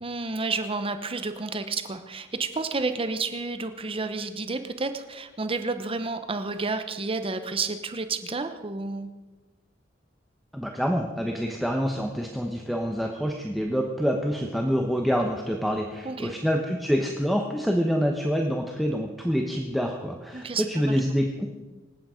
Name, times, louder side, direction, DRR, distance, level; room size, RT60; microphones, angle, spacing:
voice 1, 0.0-9.1 16.0-16.3 20.3-21.0, right 3 dB, 30° right, 9 dB, 0.8 m, -30 dB
voice 2, 10.5-21.5, equal, ahead, 1 dB, 1.1 m, -26 dB
26.5 x 8.9 x 5.1 m, 1.2 s
head